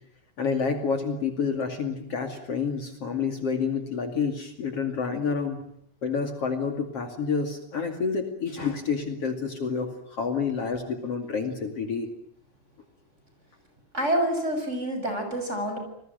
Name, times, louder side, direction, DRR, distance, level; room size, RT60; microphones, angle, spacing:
voice 1, 0.4-5.6 6.0-12.1, left 5 dB, 50° left, 6 dB, 3.4 m, -29 dB
voice 2, 13.9-15.8, right 1 dB, 20° right, 5 dB, 7.0 m, -27 dB
28.5 x 21.5 x 9.2 m, 0.70 s
omnidirectional pair, 3.5 m